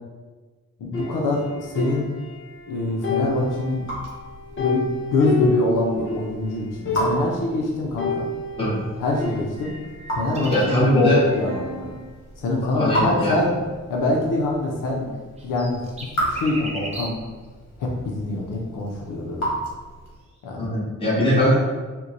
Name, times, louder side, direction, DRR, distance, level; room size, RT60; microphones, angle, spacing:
voice 1, 0.8-2.1 2.7-3.9 4.6-4.8 5.1-8.3 9.0-9.7 10.1-10.5 10.9-11.9 12.4-13.5 13.9-15.1 15.4-15.8 16.3-17.2 17.8-19.5 20.4-20.7, left 2 dB, 85° left, -1 dB, 0.6 m, -24 dB
sound 1, 0.9-2.7 3.0-6.3 6.6-6.7 6.9-7.5 8.0-10.0 10.4-12.1, left 1 dB, 40° left, 0.7 m, -30 dB
Raindrop / Drip, 3.1-20.3, right 1 dB, 65° left, 1.2 m, -34 dB
sound 2, 9.0-10.9 15.1-17.3 20.3-20.4, right 1 dB, 20° right, 0.4 m, -38 dB
voice 2, 10.5-11.2 12.7-13.4 20.6-21.5, equal, 15° left, -9 dB, 1.2 m, -20 dB
4.3 x 2.2 x 2.6 m, 1.4 s
wide cardioid pair, 160°, 31 cm